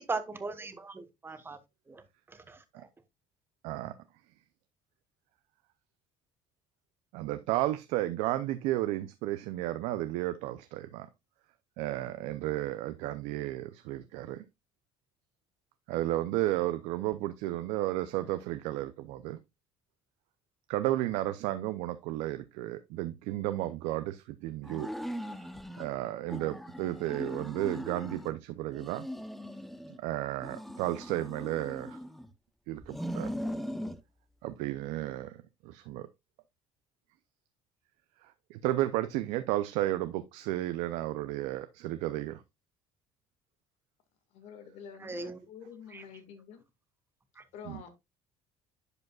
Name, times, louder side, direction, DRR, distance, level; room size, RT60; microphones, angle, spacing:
voice 1, 0.0-1.6 1.9-2.9 45.0-45.4 45.9-46.0 47.3-47.4, right 3 dB, 20° right, 1.2 m, -39 dB
voice 2, 7.1-11.1 11.8-14.4 15.9-19.4 20.7-24.9 25.8-29.1 30.0-32.0 32.7-33.3 34.4-35.4 35.6-36.1 38.5-42.4, right 15 dB, 85° right, 0.6 m, -33 dB
sound 1, 24.6-25.9 26.3-28.4 28.7-30.0 30.4-32.3 32.8-34.0, equal, ahead, 0.7 m, -39 dB
voice 3, 44.3-46.6 47.5-47.9, left 7 dB, 80° left, 1.8 m, -48 dB
10.5 x 5.1 x 2.4 m
cardioid pair, 105°, 11 cm